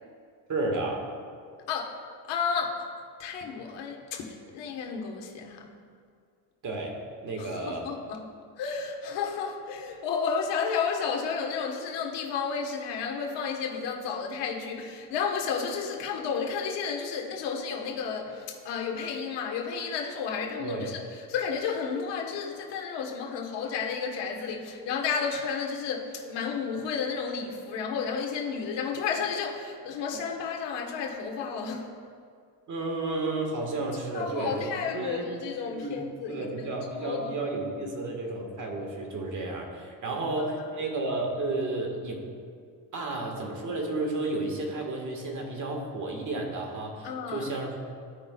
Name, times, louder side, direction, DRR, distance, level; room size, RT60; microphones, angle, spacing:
voice 1, 0.5-1.1 6.6-6.9 7.2-7.9 20.6-20.9 32.7-35.3 35.7-35.9 36.3-42.2 42.9-47.8, right 2 dB, 45° right, 1 dB, 1.7 m, -32 dB
voice 2, 1.7-2.9 3.2-5.7 7.4-8.2 8.6-31.9 34.1-36.7 37.0-37.5 40.1-40.2 47.0-47.5, left 6 dB, 70° left, 1 dB, 1.3 m, -32 dB
15.5 x 5.2 x 2.3 m, 2.2 s
supercardioid pair, 95°, 44 cm